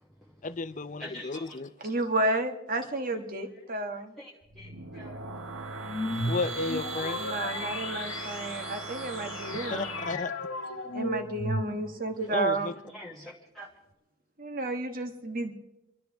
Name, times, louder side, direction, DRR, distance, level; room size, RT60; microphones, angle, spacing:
voice 1, 0.4-1.7 6.3-7.2 9.5-10.3 12.3-12.7, left 4 dB, 35° left, 0.5 m, -33 dB
voice 2, 1.0-1.6 3.1-3.2 4.2-5.2 6.8-6.9 8.5-8.8 10.1-10.2 12.2-12.3 12.8-13.7, left 1 dB, ahead, 1.2 m, -45 dB
voice 3, 1.8-4.1 7.2-9.9 10.9-12.7 14.4-15.5, right 2 dB, 40° right, 1.4 m, -31 dB
sound 1, 4.4-10.1, right 3 dB, 65° right, 1.1 m, -38 dB
sound 2, 5.9-12.2, left 1 dB, 75° left, 1.5 m, -35 dB
28.5 x 12.5 x 3.5 m
head